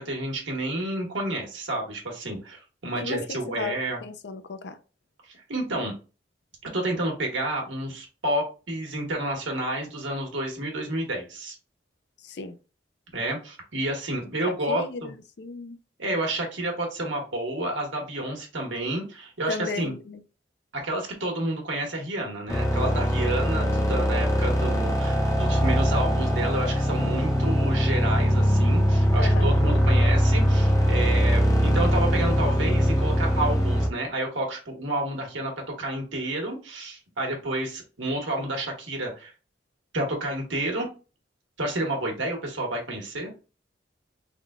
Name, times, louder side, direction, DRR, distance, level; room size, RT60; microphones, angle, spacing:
voice 1, 0.0-4.0 5.5-5.9 6.6-11.5 13.1-15.1 16.0-19.9 20.7-35.5 35.8-39.3 39.9-40.9 41.6-43.3, right 1 dB, 85° right, 1.3 m, -30 dB
voice 2, 3.0-3.8 4.0-4.8 12.2-12.6 14.7-15.8 19.5-20.2 29.2-29.5, left 4 dB, 60° left, 0.5 m, -35 dB
sound 1, 22.5-33.9, equal, 15° left, 0.7 m, -22 dB
3.6 x 2.3 x 3.5 m
head